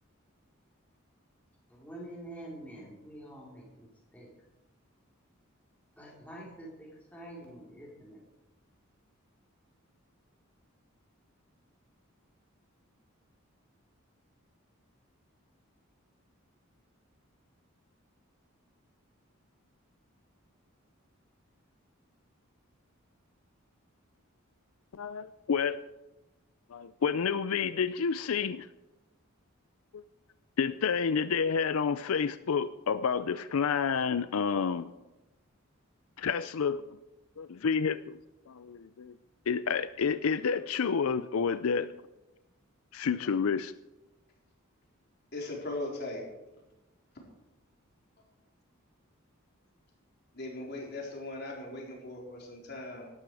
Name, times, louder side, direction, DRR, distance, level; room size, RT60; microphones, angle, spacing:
voice 1, 1.7-4.3 6.0-8.2, right 1 dB, 5° left, -4 dB, 4.1 m, -47 dB
voice 2, 24.9-25.8 26.7-28.7 30.6-34.9 36.2-37.0 37.4-38.2 38.5-39.2 39.5-41.9 42.9-43.7, left 6 dB, 80° left, 13 dB, 0.5 m, -29 dB
voice 3, 45.3-46.2 50.3-53.0, left 2 dB, 50° left, -1 dB, 4.2 m, -39 dB
17.0 x 12.0 x 4.8 m, 1.0 s
head